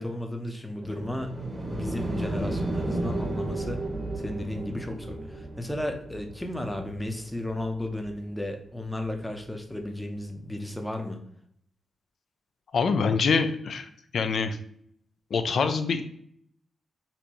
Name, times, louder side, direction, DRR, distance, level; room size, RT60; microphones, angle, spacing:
voice 1, 0.0-1.4 1.7-3.8 4.2-11.2, left 1 dB, 5° left, 4 dB, 0.6 m, -34 dB
sound 1, 0.8-8.1 9.2-9.3, right 2 dB, 25° right, 0.8 m, -33 dB
voice 2, 12.7-14.6 15.3-16.0, left 5 dB, 65° left, 9 dB, 0.4 m, -25 dB
4.3 x 2.6 x 2.9 m, 0.66 s
cardioid pair, 95°, 0 cm